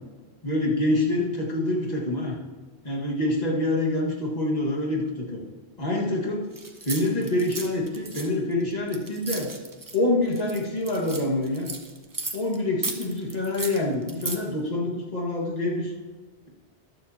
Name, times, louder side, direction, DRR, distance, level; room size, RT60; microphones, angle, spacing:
voice 1, 0.4-2.4 2.8-5.4 5.8-6.5 6.9-9.5 9.9-11.7 12.3-15.9, left 2 dB, 40° left, -3 dB, 1.9 m, -26 dB
sound 1, 6.5-10.0 10.3-12.6 12.8-14.4, right 3 dB, 20° right, 0.7 m, -35 dB
22.0 x 7.3 x 2.9 m, 1.4 s
omnidirectional pair, 1.1 m